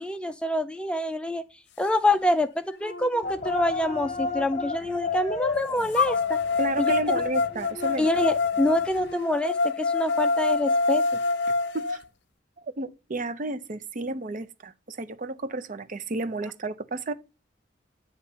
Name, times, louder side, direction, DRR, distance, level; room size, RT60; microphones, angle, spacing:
voice 1, 0.0-1.4 1.8-6.4 6.8-6.9 8.0-11.0, left 1 dB, 5° left, 0.4 m, -26 dB
sound 1, 2.1-2.2 2.8-4.7 5.9-12.0, left 4 dB, 60° left, 0.7 m, -27 dB
sound 2, 3.2-9.1, left 3 dB, 35° left, 1.0 m, -34 dB
voice 2, 6.6-8.1 11.7-12.0 12.6-17.1, right 2 dB, 45° right, 0.5 m, -32 dB
8.4 x 2.9 x 5.4 m
head